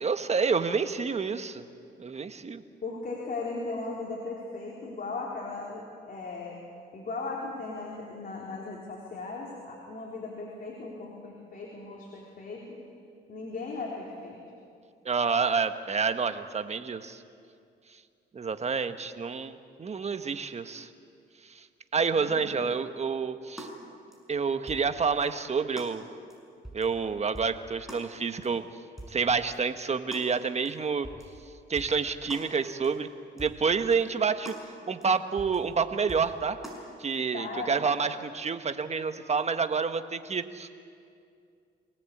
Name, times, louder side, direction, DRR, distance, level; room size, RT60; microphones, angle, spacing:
voice 1, 0.0-1.6 2.0-2.6 15.0-17.2 18.3-20.9 21.4-21.7 21.9-23.7 24.3-26.0 26.7-28.6 29.1-31.1 31.7-33.1 33.4-36.6 37.0-40.7, right 5 dB, 35° right, 9 dB, 1.3 m, -28 dB
voice 2, 2.8-6.6 6.9-12.8 13.3-14.4 22.1-22.6 37.3-37.7, left 3 dB, 45° left, -2 dB, 4.0 m, -37 dB
sound 1, 23.6-23.7 24.1-24.2 24.7-24.9 25.2-25.3 25.8-25.9 26.3-26.4 26.6-26.9 27.3-27.6 27.9-28.0 28.4-28.5 29.0-29.2 29.5-29.6 30.1-30.3 30.7-30.8 31.0-31.3 31.8-32.0 32.3-32.5 32.8-32.9 33.4-33.6 33.9-34.0 34.5-34.6 35.0-35.1 35.4-35.6 36.1-36.3 36.6-36.8, right 1 dB, ahead, 6.4 m, -43 dB
24.5 x 18.5 x 8.6 m, 2.4 s
cardioid pair, 90°, 20 cm